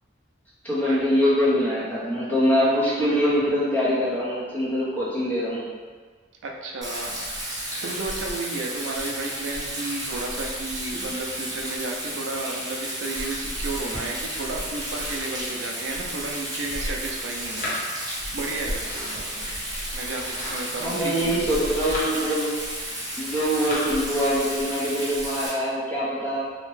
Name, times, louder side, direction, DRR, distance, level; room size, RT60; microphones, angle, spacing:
voice 1, 0.6-5.7 20.8-22.6 23.2-26.4, equal, 10° left, -9 dB, 0.6 m, -23 dB
voice 2, 6.4-7.2 7.5-17.9 18.3-19.5 19.9-21.5, right 2 dB, 85° right, 0 dB, 0.4 m, -33 dB
Rain, 6.8-25.5, right 1 dB, 20° right, 0.9 m, -32 dB
Domestic sounds home sounds, 13.4-23.8, left 1 dB, 45° left, 0.8 m, -39 dB
2.7 x 2.1 x 3.1 m, 1.5 s
head